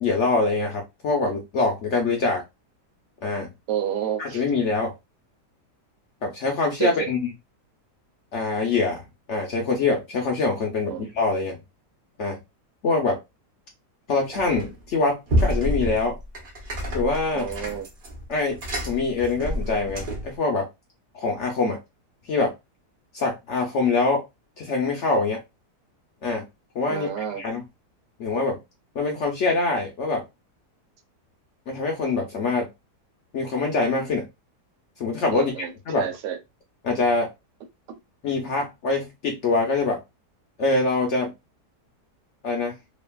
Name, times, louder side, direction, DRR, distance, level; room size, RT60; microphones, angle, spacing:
voice 1, 0.0-2.4 3.2-3.5 4.2-4.9 6.2-7.2 8.3-11.6 12.2-12.4 12.8-13.2 14.1-16.2 16.9-17.5 18.3-18.6 18.8-20.7 21.1-21.8 22.3-22.5 23.1-24.2 24.6-25.4 26.2-26.4 26.7-27.6 28.2-28.6 28.9-30.2 31.7-32.7 33.3-34.3 35.0-36.1 36.8-37.3 38.2-40.0 40.6-41.3 42.4-42.7, left 3 dB, 65° left, 0.7 m, -24 dB
voice 2, 3.7-4.4 6.8-7.1 10.9-11.0 17.3-17.9 26.9-27.4 35.3-36.4, right 9 dB, 85° right, 1.3 m, -29 dB
sound 1, 14.3-14.8 15.3-20.4, equal, 45° right, 0.7 m, -28 dB
2.8 x 2.5 x 2.2 m
omnidirectional pair, 1.8 m